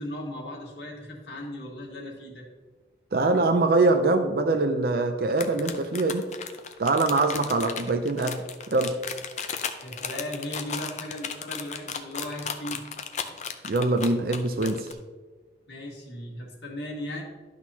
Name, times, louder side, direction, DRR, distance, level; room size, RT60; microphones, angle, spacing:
voice 1, 0.0-2.5 9.8-12.8 15.7-17.2, left 1 dB, 75° left, 0 dB, 1.7 m, -37 dB
voice 2, 3.1-6.2 6.8-8.4 8.7-9.0 13.6-14.9, right 2 dB, 55° right, 7 dB, 0.5 m, -23 dB
sound 1, 5.3-14.9, left 7 dB, 40° left, 0.5 m, -35 dB
11.5 x 6.1 x 2.8 m, 1.4 s
head